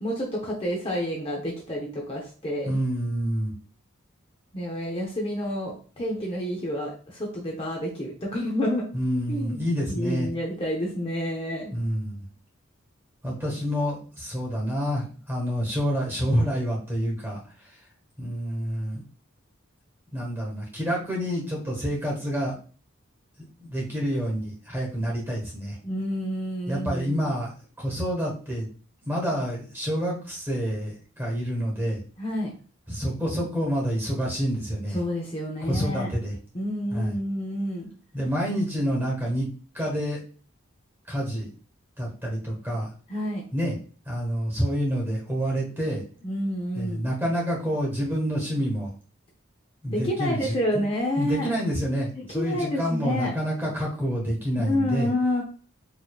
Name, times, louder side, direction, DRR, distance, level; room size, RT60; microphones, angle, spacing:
voice 1, 0.0-2.7 4.5-8.9 9.3-9.6 9.9-11.7 25.8-27.3 32.2-32.5 34.9-36.1 36.5-37.9 43.1-43.4 46.2-47.1 49.9-51.5 52.2-53.3 54.5-55.4, left 1 dB, 25° left, -1 dB, 0.7 m, -29 dB
voice 2, 2.6-3.5 8.9-10.3 11.7-12.2 13.2-17.4 18.2-19.0 20.1-22.6 23.6-25.8 26.7-27.5 27.8-28.6 29.1-32.0 32.9-35.0 35.7-36.4 36.9-37.1 38.1-39.5 39.7-40.2 41.1-41.5 42.0-42.9 43.5-43.7 44.1-46.0 46.7-48.9 49.8-50.8 51.2-55.1, equal, 10° right, -2 dB, 1.4 m, -28 dB
4.8 x 2.9 x 2.3 m, 0.40 s
head